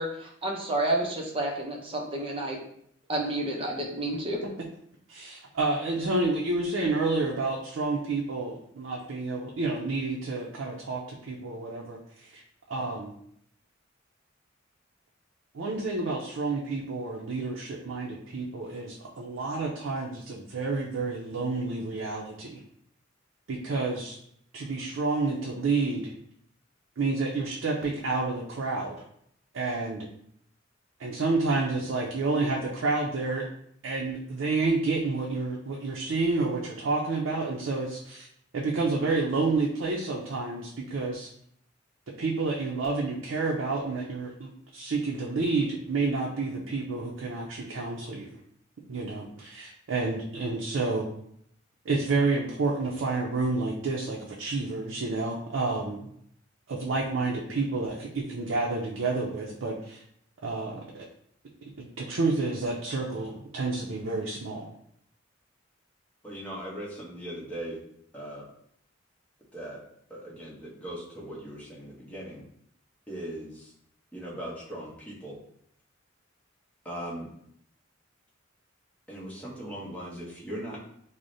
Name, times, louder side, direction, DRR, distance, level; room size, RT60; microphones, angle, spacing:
voice 1, 0.0-2.6 3.1-4.4, right 1 dB, 30° right, 0 dB, 0.5 m, -30 dB
voice 2, 5.1-12.4 12.7-13.1 15.5-22.6 23.5-24.2 24.5-26.1 27.0-29.0 29.5-30.1 31.0-33.4 33.8-38.3 38.5-41.3 42.2-48.4 48.9-51.1 51.9-56.1 56.7-60.0 60.4-61.0 61.8-64.7, right 3 dB, 75° right, -2 dB, 0.5 m, -29 dB
voice 3, 66.2-67.8 68.1-68.4 69.5-69.8 70.1-72.4 73.1-73.6 74.1-75.4 76.8-77.3 79.1-80.8, right 1 dB, 5° left, -6 dB, 0.9 m, -39 dB
4.7 x 2.0 x 2.6 m, 0.69 s
head